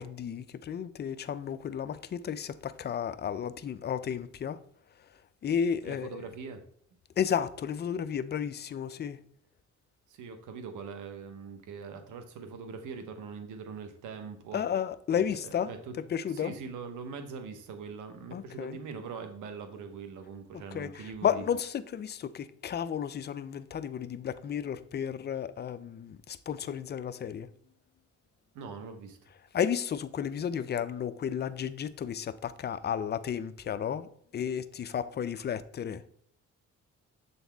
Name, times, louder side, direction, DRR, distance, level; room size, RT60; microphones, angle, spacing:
voice 1, 0.0-4.6 5.4-6.2 7.2-9.2 14.5-15.7 16.1-16.5 18.3-18.8 20.7-27.5 29.5-36.0, left 8 dB, 35° left, 0.4 m, -33 dB
voice 2, 5.8-6.6 10.1-14.6 15.1-15.9 16.3-21.4 28.5-29.2, right 5 dB, 85° right, 1.0 m, -42 dB
7.0 x 4.1 x 3.4 m
cardioid pair, 90°, 30 cm